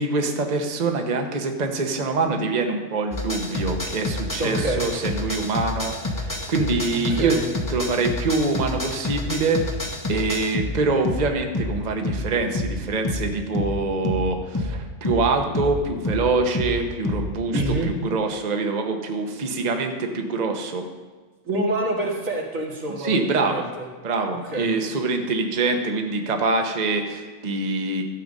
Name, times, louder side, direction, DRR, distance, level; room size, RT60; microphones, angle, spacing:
voice 1, 0.0-7.4 7.7-20.9 23.0-23.6 24.0-28.0, right 3 dB, 35° right, 4 dB, 1.0 m, -25 dB
sound 1, 3.1-17.8, left 1 dB, 15° left, 0.8 m, -28 dB
voice 2, 4.4-4.8 6.9-7.5 17.5-17.9 21.4-23.9 24.4-24.7, right 2 dB, 85° right, -2 dB, 2.3 m, -27 dB
13.0 x 7.8 x 5.3 m, 1.3 s
omnidirectional pair, 1.4 m